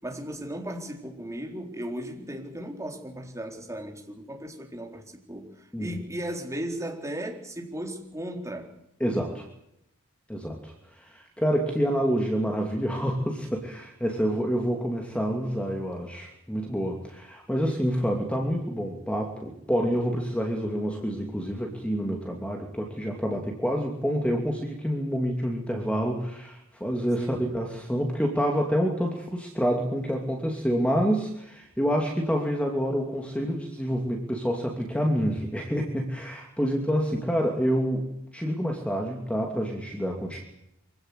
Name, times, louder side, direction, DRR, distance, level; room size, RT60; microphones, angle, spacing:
voice 1, 0.0-5.0 5.3-8.7 27.2-27.5, right 1 dB, 15° right, 2 dB, 4.1 m, -36 dB
voice 2, 9.0-9.4 10.3-40.4, equal, 5° left, 1 dB, 2.8 m, -28 dB
25.0 x 16.5 x 8.3 m, 0.80 s
head